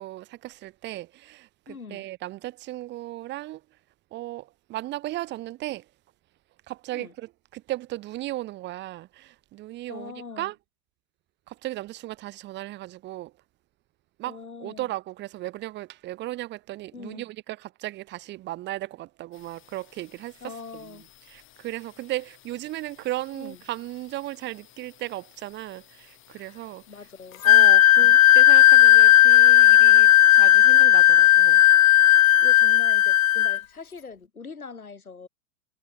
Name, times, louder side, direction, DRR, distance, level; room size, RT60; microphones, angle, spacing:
voice 1, 0.0-3.6 4.1-5.8 6.7-10.5 11.5-13.3 14.2-21.0 21.3-26.8 27.4-31.6, right 16 dB, 25° right, 1.2 m, -36 dB
voice 2, 1.7-2.0 6.9-7.1 9.9-10.5 14.2-14.9 16.9-17.2 20.4-21.0 23.3-23.6 26.9-27.4 28.0-28.1 32.4-35.3, left 5 dB, 85° left, 3.4 m, -42 dB
sound 1, 19.3-27.7, left 13 dB, 30° left, 7.5 m, -56 dB
Wind instrument woodwind instrument, 27.4-33.6, left 13 dB, 70° left, 0.6 m, -15 dB
figure-of-eight pair, 110°, 43 cm